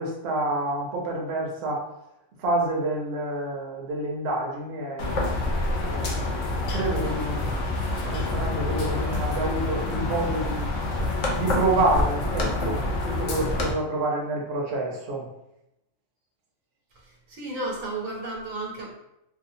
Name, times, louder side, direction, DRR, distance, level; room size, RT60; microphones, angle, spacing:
voice 1, 0.0-1.8 2.4-5.3 5.8-6.3 6.7-7.6 8.0-10.7 11.2-15.2, right 2 dB, 60° right, -2 dB, 0.8 m, -28 dB
sound 1, 5.0-13.7, left 2 dB, 70° left, 0.9 m, -27 dB
voice 2, 17.3-19.0, right 2 dB, 80° right, -2 dB, 1.1 m, -33 dB
2.7 x 2.2 x 2.6 m, 0.84 s
omnidirectional pair, 1.4 m